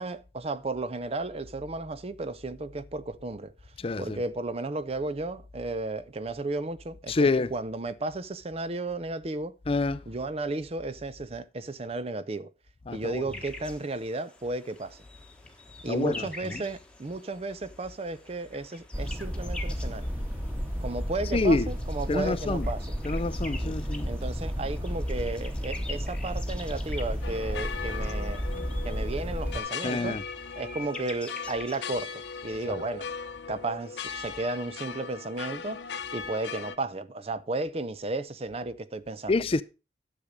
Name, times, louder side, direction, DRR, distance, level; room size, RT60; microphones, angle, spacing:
voice 1, 0.0-3.5 4.0-9.5 10.1-12.5 12.9-15.0 15.8-20.1 20.8-22.8 23.6-23.7 24.1-28.5 28.8-30.2 30.6-33.1 33.5-35.8 36.1-39.3, right 2 dB, 35° right, 0.5 m, -34 dB
voice 2, 3.8-4.2 7.1-7.5 9.7-10.0 12.9-13.2 15.9-16.6 21.3-21.7 22.1-22.7 23.0-24.1 29.8-30.2 32.7-32.8 39.3-39.6, left 3 dB, 30° left, 0.4 m, -27 dB
sound 1, 13.3-32.7, left 2 dB, 5° left, 1.2 m, -47 dB
sound 2, 18.9-29.6, equal, 10° right, 1.5 m, -32 dB
sound 3, 27.2-36.8, left 6 dB, 65° left, 0.7 m, -38 dB
10.0 x 6.7 x 5.0 m
head